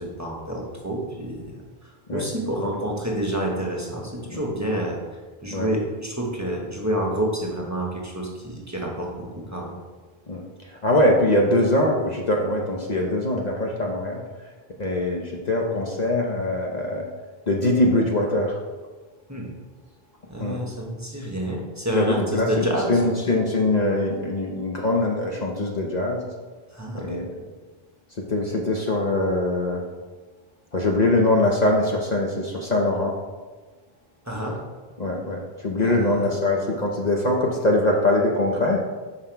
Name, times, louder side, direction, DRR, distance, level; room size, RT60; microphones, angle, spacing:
voice 1, 0.0-1.4 2.1-5.0 5.4-9.7 19.3-19.5 20.3-23.1 26.7-27.2 34.3-34.6 35.8-36.3, right 1 dB, 15° right, -2 dB, 1.0 m, -28 dB
voice 2, 10.7-14.2 14.8-17.1 17.5-18.6 20.4-20.6 21.9-26.2 26.9-27.3 28.2-29.8 30.7-33.2 35.0-38.8, left 1 dB, 45° left, 0 dB, 0.8 m, -22 dB
5.7 x 5.6 x 4.5 m, 1.3 s
omnidirectional pair, 1.1 m